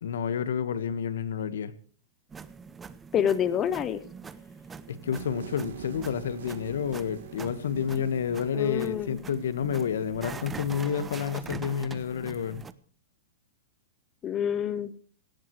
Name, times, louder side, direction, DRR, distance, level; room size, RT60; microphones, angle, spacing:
voice 1, 0.0-1.7 4.9-12.6, left 7 dB, 80° left, 13 dB, 1.7 m, -30 dB
sound 1, 2.3-12.7, right 5 dB, 10° right, 0.7 m, -43 dB
voice 2, 3.1-4.0 8.5-9.2 14.2-14.9, left 9 dB, 20° left, 14 dB, 0.8 m, -27 dB
sound 2, 5.1-9.9, right 10 dB, 85° right, 1.6 m, -46 dB
19.0 x 17.5 x 3.3 m, 0.42 s
supercardioid pair, 160°, 0 cm